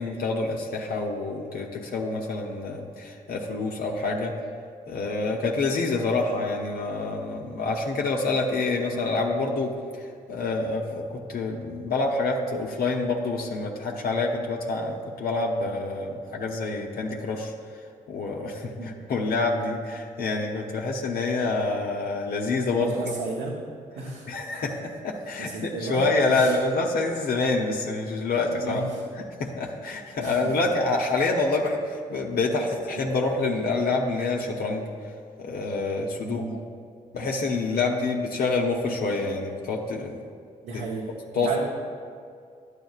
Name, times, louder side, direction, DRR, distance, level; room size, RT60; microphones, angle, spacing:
voice 1, 0.0-4.3 4.9-17.5 18.1-18.7 19.1-22.9 24.3-28.8 29.4-34.8 35.4-36.6 37.1-40.2 40.7-40.8 41.3-41.5, left 3 dB, 70° left, -1 dB, 0.8 m, -27 dB
voice 2, 22.7-23.5 24.0-24.3 25.4-26.5 28.6-29.0 30.2-30.6 36.2-36.5 40.6-41.1 41.4-41.6, right 3 dB, 85° right, -4 dB, 0.9 m, -33 dB
10.5 x 8.4 x 2.4 m, 2.2 s
supercardioid pair, 50°, 16 cm